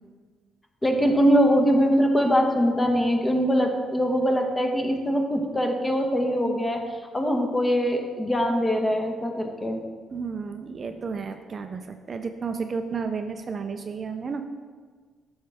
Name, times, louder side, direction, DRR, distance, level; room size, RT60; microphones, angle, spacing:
voice 1, 0.8-6.8 7.1-9.8, equal, 15° left, 3 dB, 1.1 m, -22 dB
voice 2, 10.1-14.4, right 5 dB, 45° right, 7 dB, 0.5 m, -32 dB
9.2 x 6.4 x 3.5 m, 1.5 s
cardioid pair, 90°, 0 cm